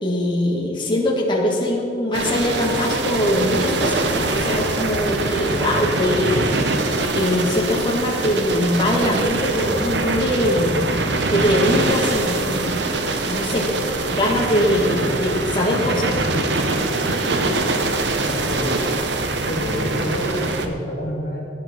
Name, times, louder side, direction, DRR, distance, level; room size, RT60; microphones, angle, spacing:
voice 1, 0.0-6.5 7.2-10.8 11.3-13.7 14.1-16.2, left 1 dB, 25° left, -2 dB, 2.0 m, -22 dB
sound 1, 2.1-20.7, right 2 dB, 70° right, 1.1 m, -23 dB
voice 2, 17.4-17.8 18.3-18.8 19.4-21.4, equal, 60° left, -2 dB, 3.0 m, -28 dB
16.5 x 9.8 x 4.5 m, 2.7 s
head